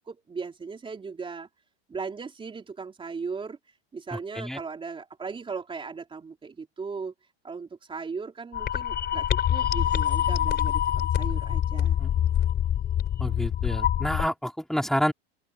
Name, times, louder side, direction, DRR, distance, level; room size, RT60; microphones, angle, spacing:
voice 1, 0.1-1.5 1.9-3.6 3.9-7.1 7.4-12.0, right 5 dB, 15° right, 3.9 m, -37 dB
voice 2, 4.1-4.6 12.0-12.1 13.2-15.1, equal, ahead, 4.1 m, -28 dB
sound 1, 8.5-14.3, left 10 dB, 30° left, 3.6 m, -25 dB
open air
supercardioid pair, 140°, 31 cm